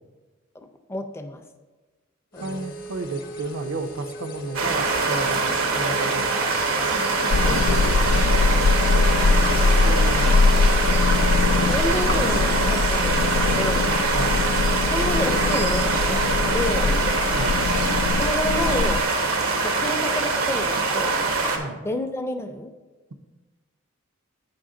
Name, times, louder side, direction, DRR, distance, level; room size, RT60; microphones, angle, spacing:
voice 1, 0.9-1.4 2.3-2.7 7.5-7.6 9.5-9.9 11.6-13.9 14.9-17.0 17.6-19.1 19.6-21.2 21.6-22.7, left 1 dB, 10° left, 6 dB, 0.4 m, -30 dB
sound 1, 2.3-17.3, right 2 dB, 45° left, 0.8 m, -37 dB
voice 2, 2.4-6.5 7.4-8.3 9.8-10.9 14.1-14.4 17.3-17.6 21.6-21.8, right 3 dB, 70° right, 9 dB, 0.5 m, -33 dB
sound 2, 4.5-21.6, right 3 dB, 90° right, 1.0 m, -24 dB
sound 3, 7.3-19.0, left 4 dB, 80° left, 0.3 m, -22 dB
7.8 x 5.6 x 3.7 m, 1.2 s
head